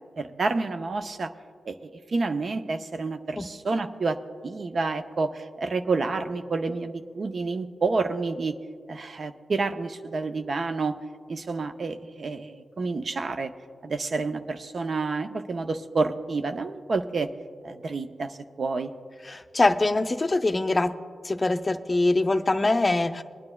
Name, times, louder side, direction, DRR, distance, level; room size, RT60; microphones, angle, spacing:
voice 1, 0.2-1.3 1.7-8.6 8.9-11.0 11.3-13.5 13.8-17.3 17.6-18.9, right 3 dB, 60° right, 8 dB, 0.5 m, -29 dB
voice 2, 19.3-20.9 21.2-23.2, left 2 dB, 30° left, 8 dB, 0.5 m, -23 dB
24.5 x 9.6 x 2.3 m, 2.1 s
cardioid pair, 55°, 0 cm